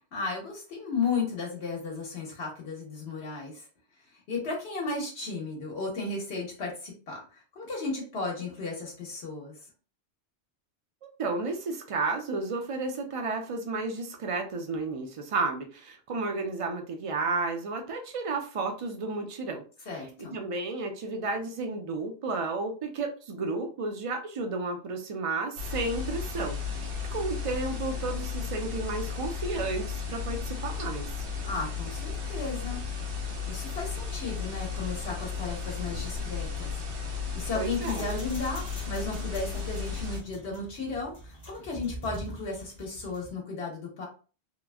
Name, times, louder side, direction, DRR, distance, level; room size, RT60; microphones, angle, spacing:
voice 1, 0.1-3.7 4.3-9.6 19.9-20.4 31.4-32.8 33.5-36.7 37.3-44.1, left 4 dB, 75° left, -2 dB, 1.1 m, -34 dB
voice 2, 11.2-19.6 20.2-31.1 37.5-38.1, right 3 dB, 50° right, 4 dB, 0.4 m, -32 dB
sound 1, 25.6-40.2, left 6 dB, 85° right, 1.1 m, -34 dB
sound 2, 37.2-43.4, right 1 dB, 25° left, 0.6 m, -45 dB
2.9 x 2.4 x 2.2 m, 0.36 s
omnidirectional pair, 1.1 m